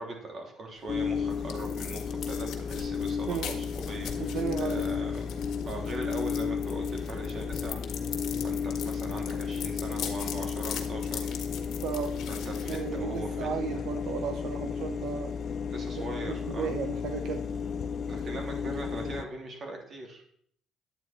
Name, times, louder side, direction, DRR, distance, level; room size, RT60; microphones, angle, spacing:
voice 1, 0.0-5.2 5.6-7.8 8.4-11.3 12.3-13.5 13.7-13.8 15.7-16.8 18.1-20.3, right 2 dB, 40° right, 2 dB, 2.9 m, -40 dB
sound 1, 0.8-13.4, left 9 dB, 60° left, 1.7 m, -42 dB
sound 2, 0.9-19.2, left 6 dB, 45° left, 0.6 m, -33 dB
voice 2, 4.2-4.9 11.8-12.2 12.6-15.4 16.3-17.4, right 7 dB, 70° right, 7 dB, 0.8 m, -34 dB
11.0 x 8.8 x 4.4 m, 0.63 s
cardioid pair, 120°, 0 cm